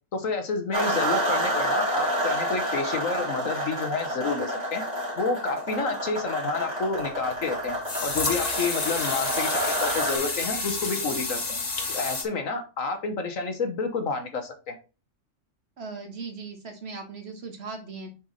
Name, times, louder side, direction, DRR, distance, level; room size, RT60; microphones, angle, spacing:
voice 1, 0.1-4.8 5.2-7.8 8.0-11.6 11.9-14.7, left 4 dB, 85° left, 6 dB, 1.6 m, -29 dB
sound 1, 0.7-10.2, right 1 dB, 30° right, 2.1 m, -29 dB
sound 2, 7.0-7.1 7.8-12.2, left 3 dB, 35° left, 1.1 m, -30 dB
voice 2, 15.8-18.1, right 4 dB, 55° right, 4 dB, 1.6 m, -38 dB
7.0 x 4.7 x 4.0 m, 0.32 s
omnidirectional pair, 1.4 m